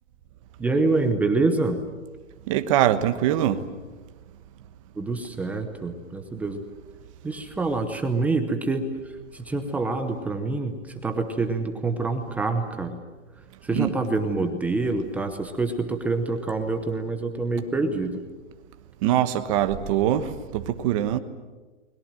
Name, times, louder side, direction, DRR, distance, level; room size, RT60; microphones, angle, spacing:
voice 1, 0.6-1.8 5.0-6.6 7.2-8.8 9.3-10.8 11.0-13.0 13.6-18.2, right 3 dB, 5° right, 5 dB, 0.8 m, -26 dB
voice 2, 2.5-3.6 13.7-13.9 19.0-21.2, right 12 dB, 25° right, 9 dB, 1.2 m, -23 dB
29.5 x 21.5 x 7.7 m, 1.3 s
hypercardioid pair, 160°, 38 cm